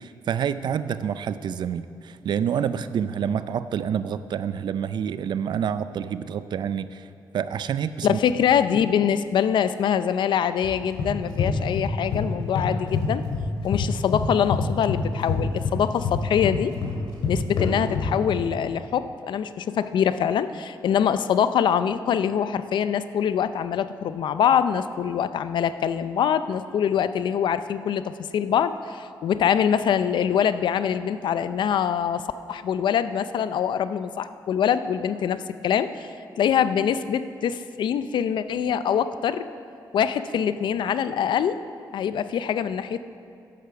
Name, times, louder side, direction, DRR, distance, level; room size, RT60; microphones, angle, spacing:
voice 1, 0.0-7.1 7.3-8.2, right 8 dB, 65° right, 13 dB, 0.4 m, -28 dB
voice 2, 8.0-13.2 13.6-16.7 17.3-36.1 36.4-39.5 39.9-41.6 41.9-43.0, left 8 dB, 75° left, 12 dB, 0.5 m, -24 dB
sound 1, 10.6-12.2 12.6-13.8 14.1-18.4, left 5 dB, 90° left, 2.5 m, -26 dB
10.5 x 8.3 x 6.9 m, 2.4 s
wide cardioid pair, 130°, 8 cm